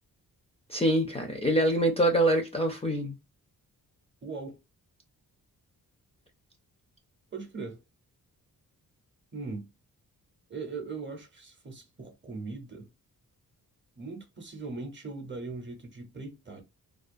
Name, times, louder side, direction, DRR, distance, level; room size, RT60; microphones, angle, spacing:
voice 1, 0.7-3.1, right 1 dB, 15° left, 0.4 m, -25 dB
voice 2, 4.2-4.6 7.3-7.8 9.3-9.7 10.5-12.9 14.0-16.6, right 4 dB, 30° right, 0.7 m, -39 dB
2.4 x 2.3 x 2.4 m
wide cardioid pair, 105°, 37 cm